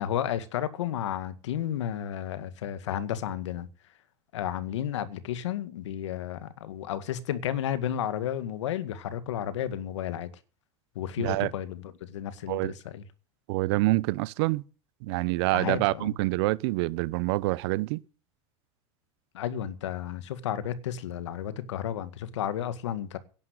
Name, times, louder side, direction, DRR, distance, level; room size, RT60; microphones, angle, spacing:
voice 1, 0.0-3.7 4.3-10.3 11.0-13.0 15.5-16.1 19.3-23.2, left 10 dB, 85° left, 2.0 m, -32 dB
voice 2, 11.2-11.5 12.5-12.7 13.5-14.6 15.0-18.0, right 21 dB, 65° right, 0.9 m, -26 dB
11.0 x 11.0 x 8.0 m
supercardioid pair, 125°, 15 cm